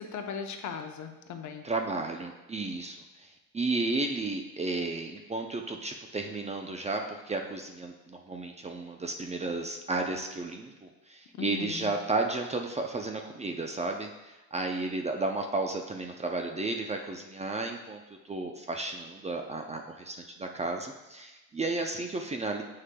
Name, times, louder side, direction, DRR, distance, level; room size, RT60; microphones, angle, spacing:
voice 1, 0.0-1.6 11.4-11.9, left 6 dB, 55° left, 5 dB, 0.8 m, -38 dB
voice 2, 1.6-18.0 18.3-22.6, right 3 dB, 20° right, 3 dB, 0.5 m, -33 dB
7.6 x 6.4 x 2.2 m, 1.1 s
cardioid pair, 115°, 35 cm